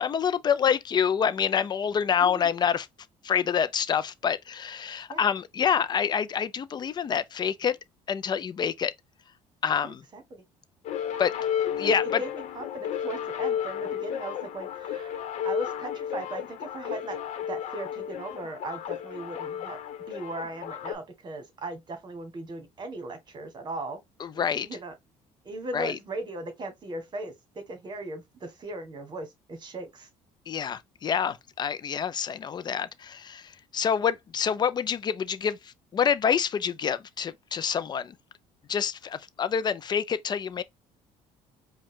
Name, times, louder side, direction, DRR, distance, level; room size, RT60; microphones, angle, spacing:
voice 1, 0.0-2.9 3.2-7.8 8.1-8.9 9.6-10.0 11.2-11.3 11.8-12.2 24.2-24.7 25.7-26.0 30.5-38.1 38.7-40.6, left 7 dB, 35° left, 0.6 m, -27 dB
voice 2, 2.2-2.5 5.1-5.2 9.8-10.4 11.8-15.2 15.4-17.2 17.5-19.8 20.1-24.0 24.6-24.9 25.4-30.1, right 2 dB, 35° right, 1.6 m, -38 dB
sound 1, 10.8-20.9, left 9 dB, 60° left, 1.1 m, -33 dB
5.1 x 2.4 x 3.6 m
cardioid pair, 125°, 13 cm